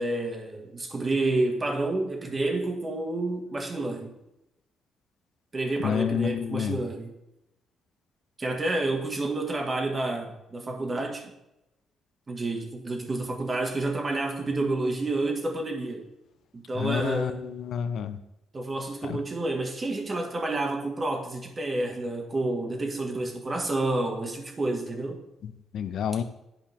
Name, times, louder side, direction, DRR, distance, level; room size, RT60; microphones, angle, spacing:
voice 1, 0.0-4.1 5.5-7.1 8.4-11.3 12.3-16.1 16.5-17.4 18.5-25.2, right 2 dB, 30° right, 2 dB, 1.7 m, -29 dB
voice 2, 5.8-6.8 16.7-18.2 19.0-19.2 25.4-26.2, left 8 dB, 70° left, 11 dB, 0.6 m, -29 dB
11.0 x 4.9 x 3.5 m, 0.89 s
cardioid pair, 90°, 0 cm